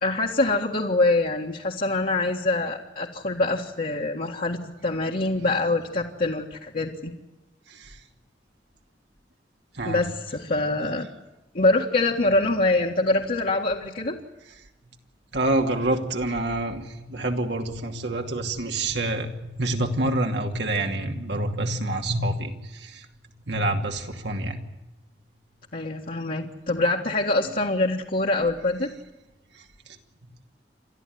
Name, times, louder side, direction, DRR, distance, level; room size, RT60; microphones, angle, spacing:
voice 1, 0.0-7.1 9.8-11.1 11.5-14.2 25.7-28.9, left 2 dB, 55° left, -2 dB, 1.8 m, -24 dB
voice 2, 7.7-8.0 9.7-10.0 15.3-23.1 23.5-24.6 29.6-29.7, right 1 dB, 80° right, 3 dB, 2.7 m, -27 dB
29.0 x 13.5 x 9.5 m, 1.0 s
head